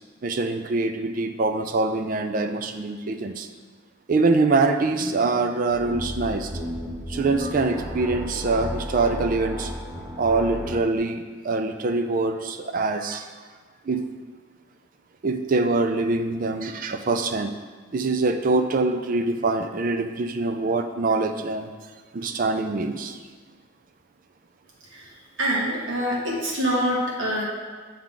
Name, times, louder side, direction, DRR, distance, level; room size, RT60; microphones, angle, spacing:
voice 1, 0.2-3.5 4.1-6.5 7.1-9.7 10.2-13.3 13.8-14.0 15.2-17.5 17.9-21.7 22.1-23.2, right 3 dB, 45° right, 7 dB, 0.4 m, -24 dB
sound 1, 5.6-10.9, equal, 5° right, 1.2 m, -33 dB
voice 2, 25.4-27.4, equal, 80° right, -4 dB, 1.6 m, -25 dB
8.6 x 3.6 x 3.8 m, 1.5 s
head